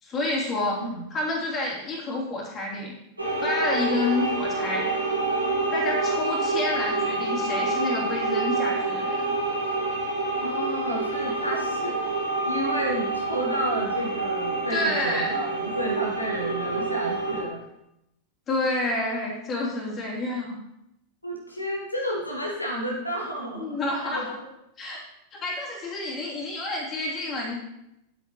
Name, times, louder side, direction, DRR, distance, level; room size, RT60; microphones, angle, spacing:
voice 1, 0.0-0.8 1.1-2.9 3.4-4.8 5.7-9.3 14.7-15.4 18.5-20.6 23.5-24.4 24.8-25.0 25.3-27.6, left 2 dB, 25° left, -4 dB, 3.2 m, -29 dB
sound 1, 3.2-17.4, right 3 dB, 85° right, 2.9 m, -27 dB
voice 2, 10.4-17.6 21.2-23.7 24.0-24.3, equal, 85° left, -2 dB, 1.4 m, -31 dB
9.6 x 8.0 x 3.1 m, 0.85 s
figure-of-eight pair, 90°, 0 cm